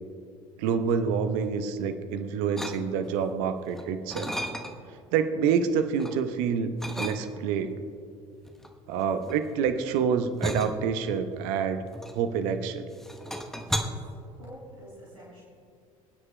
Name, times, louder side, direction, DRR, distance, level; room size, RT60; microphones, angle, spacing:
voice 1, 0.6-4.3 5.1-7.8 8.9-11.8 12.1-12.9, right 6 dB, 60° right, 9 dB, 0.8 m, -27 dB
sound 1, 2.6-3.2 3.7-5.0 5.4-6.2 6.8-7.6 8.4-12.6 12.9-13.8, equal, ahead, 1.0 m, -35 dB
voice 2, 13.6-15.4, equal, 85° right, -7 dB, 3.5 m, -48 dB
29.0 x 9.8 x 2.2 m, 2.4 s
figure-of-eight pair, 60°, 17 cm